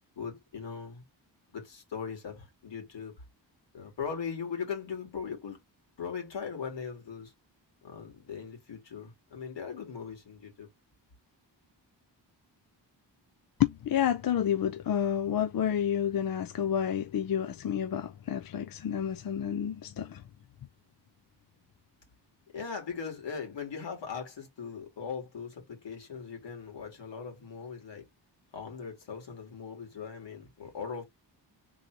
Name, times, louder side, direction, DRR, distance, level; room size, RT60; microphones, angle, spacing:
voice 1, 0.2-1.0 1.5-3.1 3.7-5.6 6.0-7.3 7.8-10.7 22.5-28.1 28.5-31.0, left 6 dB, 80° left, 2.4 m, -39 dB
voice 2, 13.6-20.2, left 9 dB, 55° left, 0.5 m, -29 dB
3.9 x 2.9 x 4.6 m
wide cardioid pair, 110°, 43 cm